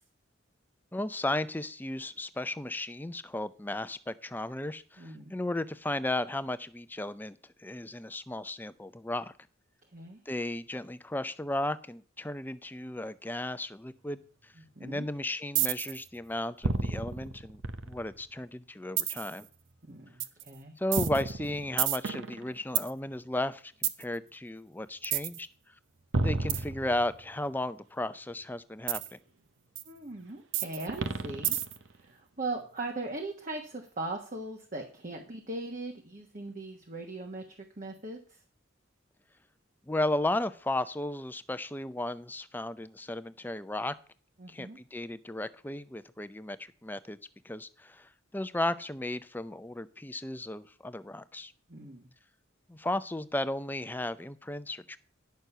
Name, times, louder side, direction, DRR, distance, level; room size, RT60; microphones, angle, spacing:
voice 1, 0.9-9.3 10.3-14.5 14.8-19.5 20.8-25.5 26.2-29.2 39.9-43.9 44.5-47.2 47.4-51.5 52.7-55.0, left 1 dB, 10° left, 12 dB, 0.5 m, -35 dB
voice 2, 5.0-5.3 9.9-10.2 14.6-15.1 19.8-20.7 29.9-31.6 31.9-38.4 44.4-44.8 51.7-52.1, right 2 dB, 40° right, 2 dB, 1.3 m, -39 dB
sound 1, 15.5-16.0 16.6-18.2 19.0-19.4 20.2-20.4 20.9-22.9 23.8-24.0 25.0-25.4 26.1-27.3 28.9-29.1 29.7-29.8 30.5-31.9, right 6 dB, 65° right, 0.8 m, -30 dB
10.5 x 6.5 x 5.5 m, 0.43 s
head